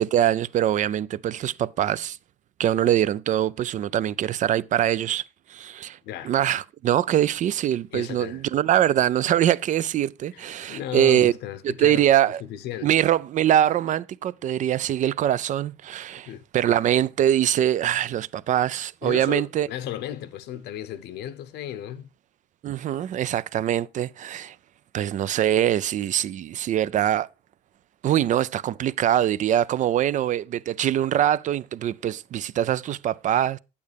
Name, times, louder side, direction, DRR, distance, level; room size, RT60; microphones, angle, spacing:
voice 1, 0.0-2.2 2.6-5.2 5.5-6.0 6.2-11.3 11.6-12.4 12.8-19.7 22.6-24.6 24.9-27.3 28.0-33.6, right 11 dB, 50° right, 0.4 m, -23 dB
voice 2, 7.9-8.4 10.3-12.1 12.5-12.9 16.3-16.4 19.0-22.1, left 11 dB, 80° left, 0.8 m, -34 dB
8.6 x 8.3 x 3.4 m
cardioid pair, 110°, 17 cm